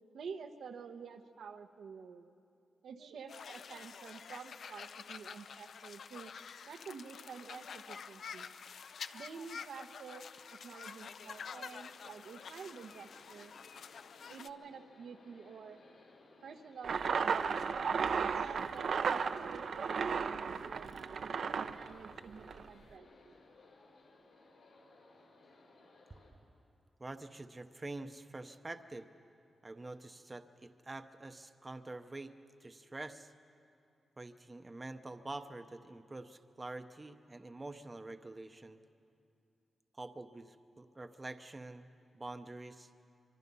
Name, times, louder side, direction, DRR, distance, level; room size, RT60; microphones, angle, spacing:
voice 1, 0.1-2.3 2.8-6.3 6.7-8.5 9.1-13.5 14.3-15.8 16.4-17.8 18.2-23.3, right 6 dB, 90° right, 5 dB, 1.1 m, -49 dB
sound 1, 3.3-14.5, left 6 dB, 65° left, 0.5 m, -48 dB
sound 2, 11.3-26.3, left 2 dB, 80° left, 4.8 m, -61 dB
sound 3, 16.8-22.7, right 6 dB, 65° right, 0.6 m, -34 dB
voice 2, 27.0-29.1 29.6-32.3 32.6-33.3 34.2-38.8 39.9-41.9 42.1-42.9, right 2 dB, 20° right, 8 dB, 0.7 m, -46 dB
24.5 x 24.0 x 5.5 m, 2.6 s
wide cardioid pair, 155°, 0 cm